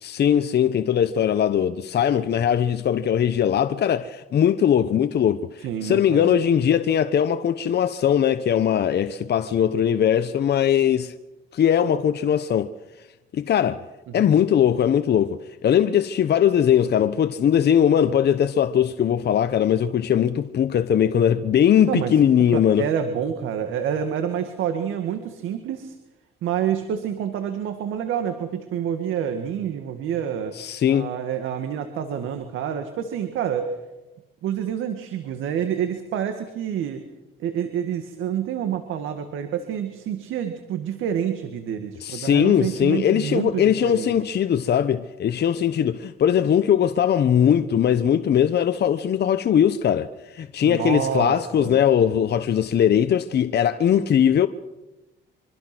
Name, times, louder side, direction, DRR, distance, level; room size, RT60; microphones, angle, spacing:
voice 1, 0.0-11.1 11.5-12.7 13.3-13.8 14.1-22.9 30.5-31.1 42.0-54.5, left 9 dB, 55° left, 0.9 m, -20 dB
voice 2, 5.6-6.3 14.1-14.3 21.9-22.2 22.5-26.0 26.4-30.6 30.9-33.7 34.4-37.0 37.4-44.1 50.6-51.8, right 9 dB, 85° right, 1.9 m, -28 dB
25.0 x 25.0 x 6.1 m
cardioid pair, 90°, 20 cm